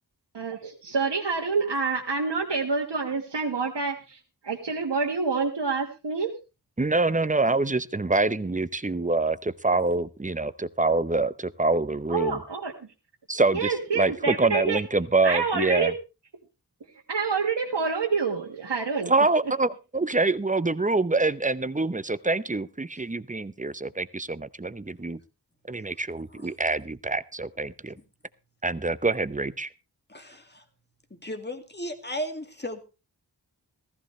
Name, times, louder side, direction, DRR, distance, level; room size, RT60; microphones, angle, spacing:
voice 1, 0.3-4.2 4.4-6.3 12.1-12.7 13.5-14.8 15.2-15.9 17.1-19.1, right 4 dB, 90° right, -1 dB, 1.5 m, -27 dB
voice 2, 6.8-12.4 13.3-15.9 19.1-25.2 25.6-28.0 28.6-29.7, right 3 dB, 20° right, 15 dB, 0.8 m, -25 dB
voice 3, 30.1-30.6 31.1-32.8, equal, 25° left, 6 dB, 2.1 m, -35 dB
15.5 x 14.5 x 3.2 m, 0.30 s
wide cardioid pair, 40°, 41 cm